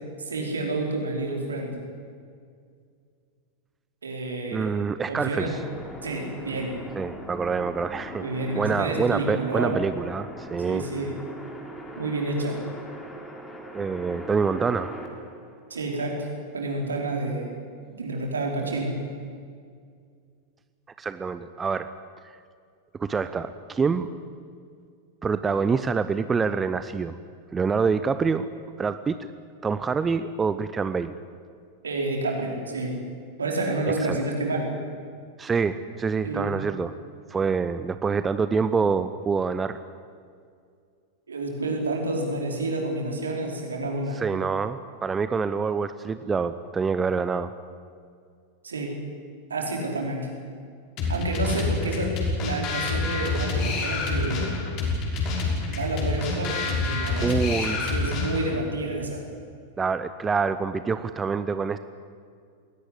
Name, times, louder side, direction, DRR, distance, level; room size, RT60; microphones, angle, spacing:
voice 1, 0.2-1.7 4.0-4.7 5.1-5.5 6.0-6.8 8.2-9.8 10.6-11.1 12.0-12.6 15.7-16.3 16.5-17.5 17.9-18.9 31.8-33.0 33.4-34.7 36.2-36.5 41.3-44.2 48.6-48.9 49.5-50.3 51.1-52.1 52.4-54.7 55.7-59.2, right 2 dB, 70° right, 0 dB, 4.9 m, -29 dB
voice 2, 4.5-5.5 7.0-8.2 8.5-10.8 13.7-15.0 21.0-21.9 23.0-24.1 25.2-27.2 27.5-28.5 28.8-29.3 29.6-31.1 34.1-34.2 35.4-37.0 37.3-39.8 44.1-47.5 57.2-57.8 59.8-61.8, right 5 dB, 15° right, 12 dB, 0.8 m, -26 dB
sound 1, 5.4-16.0 17.8-18.1 18.8-19.1, equal, 10° left, 4.0 m, -40 dB
sound 2, 51.0-58.6, left 3 dB, 40° left, 6.0 m, -27 dB
21.5 x 18.0 x 10.0 m, 2.2 s
figure-of-eight pair, 90°, 0 cm